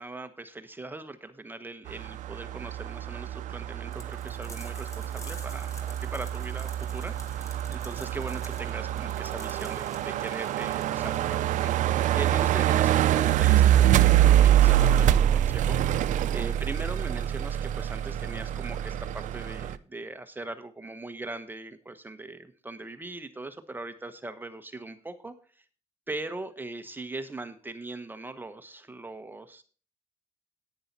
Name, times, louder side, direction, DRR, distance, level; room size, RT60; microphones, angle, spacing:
voice 1, 0.0-25.6 26.1-29.6, right 2 dB, 15° right, 9 dB, 1.0 m, -40 dB
sound 1, 1.9-19.8, right 12 dB, 85° right, 0.5 m, -25 dB
sound 2, 3.9-13.3, left 1 dB, 25° left, 1.9 m, -50 dB
10.5 x 9.4 x 4.1 m, 0.39 s
cardioid pair, 105°, 13 cm